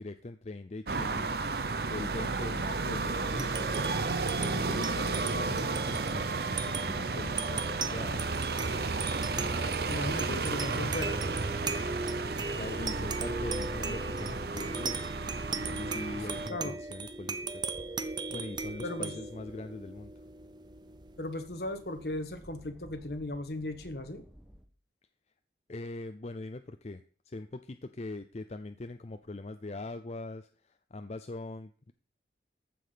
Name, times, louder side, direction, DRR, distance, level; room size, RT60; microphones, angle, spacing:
voice 1, 0.0-1.3 1.9-8.4 12.5-15.1 15.6-17.7 18.3-20.1 25.7-31.9, left 2 dB, 35° left, 9 dB, 0.5 m, -42 dB
sound 1, 0.9-16.5, right 3 dB, 55° right, 0.8 m, -33 dB
sound 2, 3.2-22.0, right 3 dB, 25° right, 0.7 m, -38 dB
voice 2, 9.9-11.2 16.5-16.8 18.8-19.1 21.2-24.2, left 1 dB, 60° left, 8 dB, 1.5 m, -36 dB
sound 3, 17.1-24.7, equal, 5° right, 1.2 m, -57 dB
14.5 x 5.3 x 5.7 m, 0.41 s
head